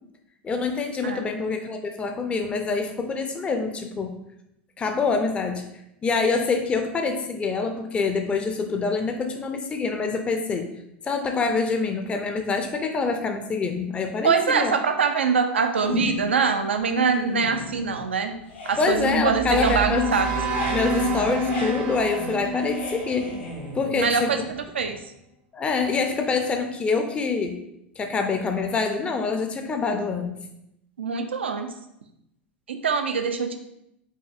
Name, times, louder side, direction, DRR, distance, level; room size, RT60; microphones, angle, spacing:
voice 1, 0.4-4.1 4.8-5.6 6.0-10.7 11.0-14.7 18.8-20.1 20.7-23.3 23.7-24.3 25.5-27.6 28.0-30.4, left 4 dB, 20° left, 4 dB, 0.4 m, -25 dB
voice 2, 14.2-18.4 18.6-20.3 24.0-24.4 24.7-25.0 31.0-31.7 32.7-33.6, right 5 dB, 80° right, 6 dB, 0.3 m, -23 dB
sound 1, 15.8-16.4 16.8-18.1 18.4-24.9, left 2 dB, 80° left, 1.4 m, -35 dB
sound 2, 19.0-24.2, right 2 dB, 55° right, 0.7 m, -29 dB
5.4 x 2.7 x 2.5 m, 0.82 s
figure-of-eight pair, 85°, 6 cm